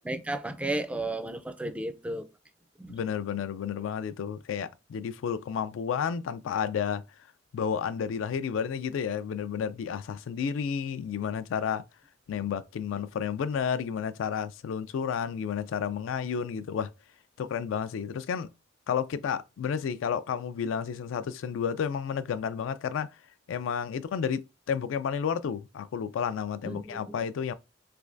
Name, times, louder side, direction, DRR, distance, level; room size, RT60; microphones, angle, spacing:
voice 1, 0.0-2.2 2.8-2.9 26.6-27.2, right 2 dB, 5° right, 0.3 m, -33 dB
voice 2, 2.9-7.0 7.5-11.8 12.3-16.9 17.4-18.5 18.9-23.1 23.5-27.5, left 7 dB, 80° left, 0.3 m, -31 dB
3.3 x 3.1 x 2.5 m
head